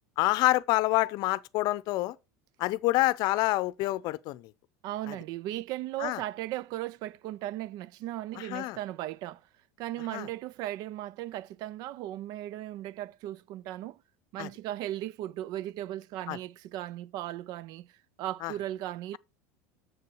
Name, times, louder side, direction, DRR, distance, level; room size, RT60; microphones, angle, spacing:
voice 1, 0.2-2.2 2.6-4.5 5.1-5.2 6.0-6.2 8.4-8.8 10.1-10.3 14.4-14.5 16.3-16.4 18.4-18.5, left 18 dB, 55° left, 0.6 m, -27 dB
voice 2, 4.8-9.4 9.8-14.0 14.3-19.2, right 14 dB, 55° right, 0.4 m, -37 dB
7.1 x 6.7 x 4.7 m
supercardioid pair, 110°, 8 cm